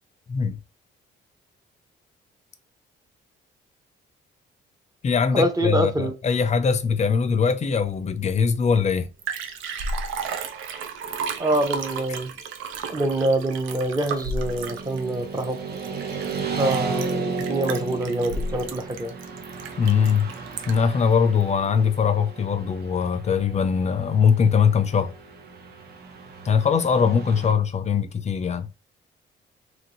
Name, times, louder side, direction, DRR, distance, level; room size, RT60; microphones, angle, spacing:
voice 1, 0.3-0.6 5.0-9.1 19.8-20.3 20.7-25.1 26.4-28.7, left 6 dB, 35° left, 0.5 m, -21 dB
voice 2, 5.3-6.1 11.4-12.3 12.9-15.6 16.6-19.1, right 1 dB, 20° right, 0.7 m, -25 dB
Liquid, 8.7-8.8 9.0-20.9 21.4-21.5, right 4 dB, 90° right, 0.5 m, -33 dB
Motorcycle / Traffic noise roadway noise, 14.4-27.5, right 4 dB, 55° right, 0.8 m, -34 dB
3.0 x 2.6 x 2.9 m
cardioid pair, 90°, 20 cm